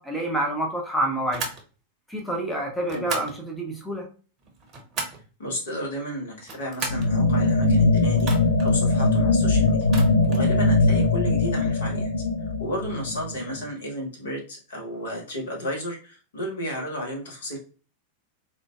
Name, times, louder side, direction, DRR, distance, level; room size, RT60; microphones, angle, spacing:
voice 1, 0.0-1.4 2.1-4.1, right 1 dB, 5° left, 0 dB, 0.7 m, -28 dB
sound 1, 1.3-1.6 2.9-3.4 4.4-5.3 6.3-7.1 8.2-8.7 9.8-10.5, right 4 dB, 30° right, 0.7 m, -34 dB
voice 2, 5.4-8.3 8.6-12.1 12.6-17.6, equal, 65° left, 0 dB, 1.0 m, -33 dB
sound 2, 6.9-13.6, left 2 dB, 80° left, 0.4 m, -21 dB
3.7 x 2.2 x 2.3 m, 0.36 s
figure-of-eight pair, 90°, 0 cm